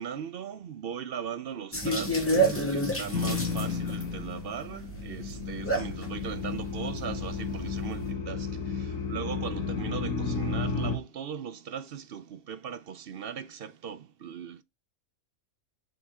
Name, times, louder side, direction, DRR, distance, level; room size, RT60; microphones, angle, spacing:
voice 1, 0.0-14.6, right 8 dB, 60° right, 0.6 m, -39 dB
sound 1, 1.7-8.1, right 1 dB, 10° left, 1.7 m, -31 dB
sound 2, 3.1-4.6 4.8-11.0, left 5 dB, 70° left, 1.6 m, -33 dB
6.6 x 4.0 x 3.6 m
omnidirectional pair, 1.5 m